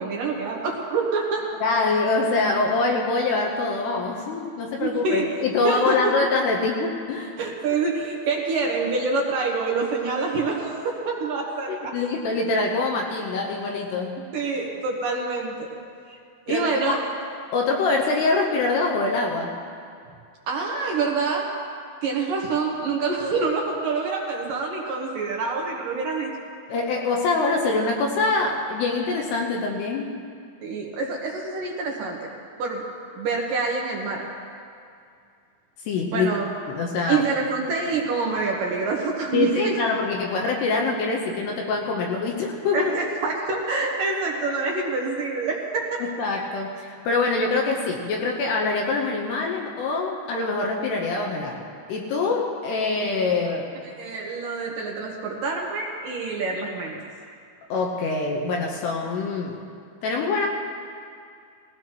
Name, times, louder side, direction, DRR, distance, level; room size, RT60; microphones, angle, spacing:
voice 1, 0.0-1.5 4.8-5.3 5.6-6.1 7.4-11.9 14.3-15.7 16.1-16.2 16.5-17.1 20.5-21.5 22.0-26.3 30.6-32.3 32.6-32.8 33.2-34.3 36.1-36.5 37.1-39.8 42.7-46.0 53.9-57.0, right 4 dB, 70° right, -1 dB, 2.2 m, -26 dB
voice 2, 1.6-7.3 11.7-14.2 16.5-17.0 17.5-19.6 26.7-30.2 35.9-36.3 36.7-37.3 39.3-42.9 46.0-53.8 57.7-59.6 60.0-60.5, left 3 dB, 75° left, 0 dB, 2.8 m, -24 dB
19.5 x 16.5 x 3.0 m, 2.4 s
omnidirectional pair, 5.3 m